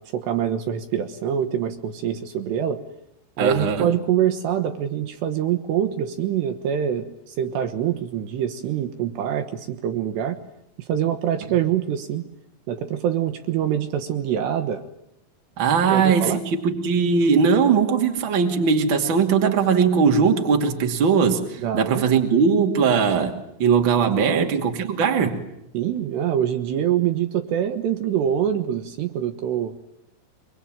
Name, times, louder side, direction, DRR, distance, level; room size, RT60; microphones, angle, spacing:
voice 1, 0.0-2.8 3.4-10.4 10.8-12.2 12.7-14.8 15.9-16.4 21.6-22.0 24.2-24.5 25.7-29.7, right 9 dB, 70° right, 9 dB, 3.1 m, -25 dB
voice 2, 3.4-3.9 15.6-25.4, right 6 dB, 35° right, 3 dB, 2.4 m, -20 dB
24.5 x 24.0 x 9.0 m, 0.82 s
omnidirectional pair, 5.5 m